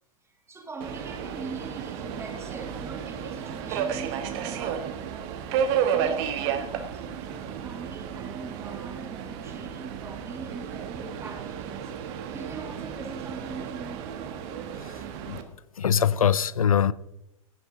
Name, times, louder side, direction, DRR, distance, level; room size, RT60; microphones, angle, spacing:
voice 1, 0.5-5.0 5.7-11.9 12.2-14.0, right 3 dB, 15° right, 2.6 m, -42 dB
Subway metro underground, 0.8-15.4, right 8 dB, 45° right, 1.5 m, -32 dB
voice 2, 15.8-16.9, left 8 dB, 75° left, 0.5 m, -23 dB
16.5 x 9.8 x 3.8 m
figure-of-eight pair, 85°, 18 cm